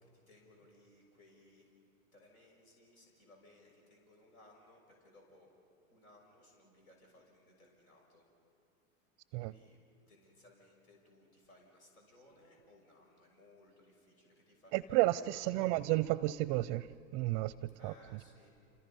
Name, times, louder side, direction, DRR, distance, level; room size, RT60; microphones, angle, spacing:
voice 1, 0.0-1.7 2.1-5.5 5.9-8.2 9.4-9.8 10.1-15.6 17.8-18.6, left 1 dB, 85° left, 6.3 m, -63 dB
voice 2, 14.7-16.9 17.1-17.5 17.8-17.9, right 18 dB, 35° right, 0.5 m, -31 dB
28.0 x 28.0 x 5.4 m
supercardioid pair, 130°, 42 cm